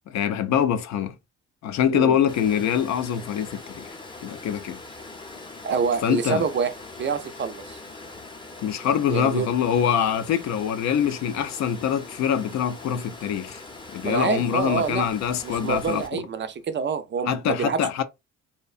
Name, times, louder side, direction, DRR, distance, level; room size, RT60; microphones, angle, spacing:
voice 1, 0.1-1.2 1.6-3.9 4.2-4.8 6.0-6.4 8.6-13.6 13.9-16.2 17.3-18.0, left 8 dB, 65° left, 0.4 m, -24 dB
Water, 2.3-16.1, left 3 dB, 15° left, 0.6 m, -42 dB
voice 2, 5.6-6.7 7.0-7.8 9.1-9.5 14.0-15.1 15.4-17.8, right 6 dB, 40° right, 0.4 m, -26 dB
2.7 x 2.1 x 2.4 m
cardioid pair, 90°, 30 cm